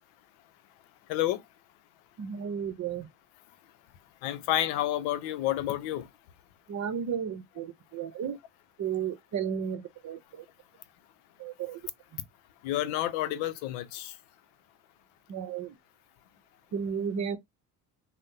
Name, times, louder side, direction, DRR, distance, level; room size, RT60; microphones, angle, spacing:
voice 1, 1.1-1.4 4.2-6.1 12.6-14.2, left 13 dB, 70° left, 0.6 m, -29 dB
voice 2, 2.2-3.1 6.7-8.4 8.8-10.4 11.4-11.8 15.3-15.7 16.7-17.4, right 7 dB, 40° right, 0.7 m, -33 dB
2.6 x 2.1 x 3.7 m
hypercardioid pair, 65°, 44 cm